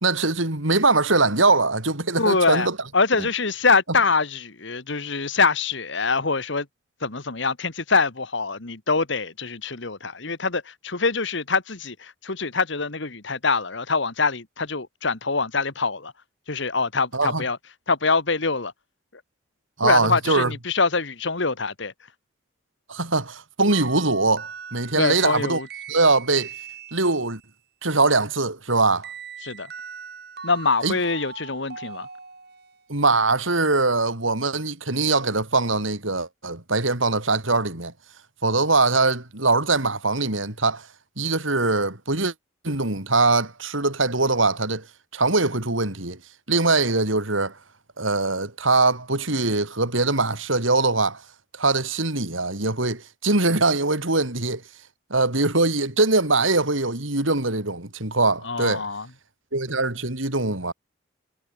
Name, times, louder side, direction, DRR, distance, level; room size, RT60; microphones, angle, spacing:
voice 1, 0.0-2.7 17.1-17.4 19.8-20.5 22.9-25.6 25.9-26.5 26.9-27.4 27.8-29.1 30.8-30.9 32.9-37.9 38.4-40.9 41.2-42.3 42.6-44.9 45.1-46.2 46.5-47.6 48.0-51.2 51.5-54.6 55.1-58.8 59.5-60.7, right 3 dB, 75° right, 4.0 m, -22 dB
voice 2, 2.2-6.7 7.0-16.1 16.5-18.7 19.1-19.2 19.8-21.9 24.9-25.7 29.4-29.7 30.4-32.1 58.4-59.1, left 4 dB, 65° left, 1.6 m, -24 dB
sound 1, 23.7-27.4 29.0-32.8, right 6 dB, 50° right, 7.0 m, -40 dB
head